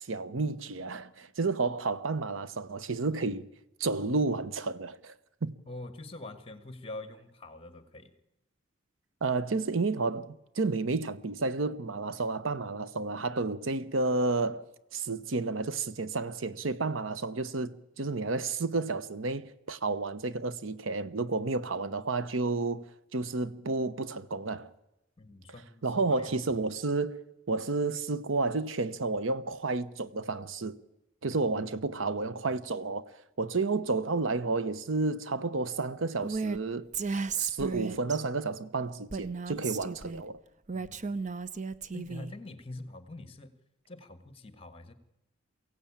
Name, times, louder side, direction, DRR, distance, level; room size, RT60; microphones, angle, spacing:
voice 1, 0.0-3.5 3.8-5.1 5.4-5.5 9.2-14.6 14.9-24.7 25.8-27.2 27.5-30.8 31.2-36.9 37.4-40.4, right 3 dB, 80° right, 0.9 m, -31 dB
voice 2, 5.7-8.1 25.2-26.3 40.7-41.1 41.9-43.5 43.9-44.9, left 2 dB, 30° left, 1.6 m, -45 dB
Female speech woman speaking, 36.2-36.6 36.9-38.2 39.1-40.2 40.7-42.3, right 5 dB, 40° right, 0.7 m, -34 dB
23.0 x 16.0 x 8.7 m
head